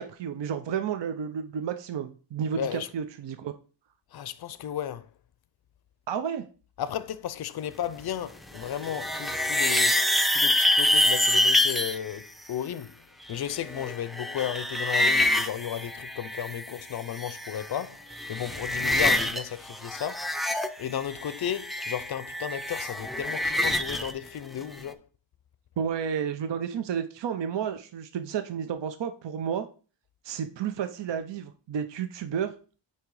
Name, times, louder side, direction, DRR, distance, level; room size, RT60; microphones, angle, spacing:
voice 1, 0.0-3.5 6.1-6.5 25.8-29.7 30.2-32.5, right 7 dB, 65° right, 0.7 m, -31 dB
voice 2, 2.6-2.9 4.1-5.1 6.8-12.9 13.3-20.3 20.8-25.1, left 10 dB, 55° left, 0.5 m, -34 dB
sound 1, 8.6-12.0 13.3-16.7 17.0-17.8 18.1-19.4 19.7-24.1, left 1 dB, ahead, 0.4 m, -26 dB
8.6 x 2.9 x 4.7 m
wide cardioid pair, 115°, 47 cm